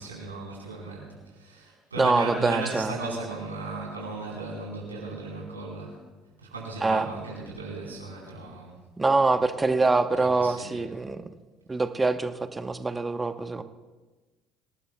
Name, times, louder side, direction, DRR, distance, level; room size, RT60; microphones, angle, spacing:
voice 1, 0.0-6.0 6.4-8.7 10.1-10.9, right 3 dB, 85° right, -4 dB, 4.2 m, -36 dB
voice 2, 2.0-2.9 6.8-7.1 9.0-11.2 11.7-13.6, right 3 dB, 20° right, 11 dB, 1.0 m, -24 dB
26.0 x 18.0 x 2.3 m, 1.2 s
figure-of-eight pair, 55°, 0 cm